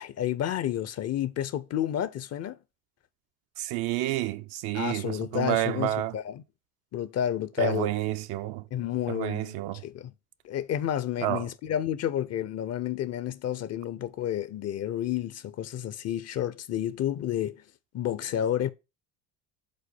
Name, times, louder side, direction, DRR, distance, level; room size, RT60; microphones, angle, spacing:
voice 1, 0.0-2.6 4.7-6.4 6.9-7.9 8.7-10.1 10.4-17.6 17.9-18.7, left 11 dB, 35° left, 0.5 m, -30 dB
voice 2, 3.6-6.1 7.6-8.6 9.1-9.8 11.2-11.5, right 14 dB, 55° right, 0.6 m, -29 dB
5.3 x 3.8 x 5.3 m
hypercardioid pair, 70°, 45 cm